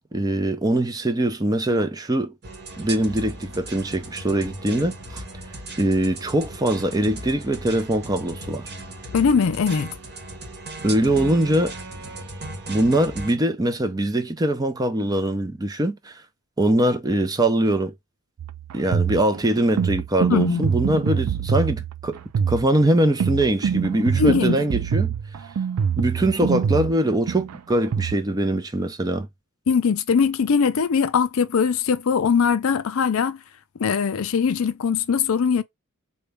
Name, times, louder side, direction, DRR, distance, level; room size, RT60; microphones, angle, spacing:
voice 1, 0.1-2.3 2.8-5.2 5.8-8.7 10.8-11.7 12.7-16.2 16.6-17.9 18.7-22.2 22.5-25.1 26.0-29.3, right 1 dB, 15° right, 0.4 m, -22 dB
sound 1, 2.4-13.4, right 2 dB, 50° right, 1.1 m, -37 dB
voice 2, 9.1-9.9 20.3-20.6 24.2-24.6 29.7-33.4 33.8-35.6, left 6 dB, 65° left, 0.4 m, -21 dB
sound 2, 18.4-28.2, right 7 dB, 90° right, 0.4 m, -25 dB
4.0 x 2.2 x 3.3 m
head